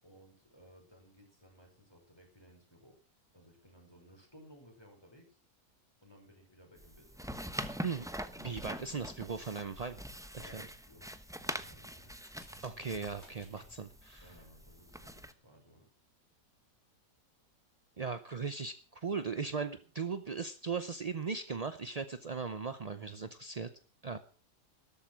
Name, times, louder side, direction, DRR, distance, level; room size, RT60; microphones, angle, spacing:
voice 1, 0.0-3.0 3.3-5.4 6.0-7.3 10.4-12.1 14.2-15.9, equal, 15° left, 2 dB, 5.4 m, -59 dB
sound 1, 6.8-15.3, equal, 5° right, 0.7 m, -44 dB
voice 2, 8.4-10.0 10.3-10.6 12.6-14.3 18.0-23.7 24.0-24.2, right 5 dB, 45° right, 10 dB, 0.5 m, -38 dB
sound 2, 12.1-13.7, left 1 dB, 40° left, 5.3 m, -61 dB
13.0 x 12.5 x 6.1 m, 0.39 s
omnidirectional pair, 1.8 m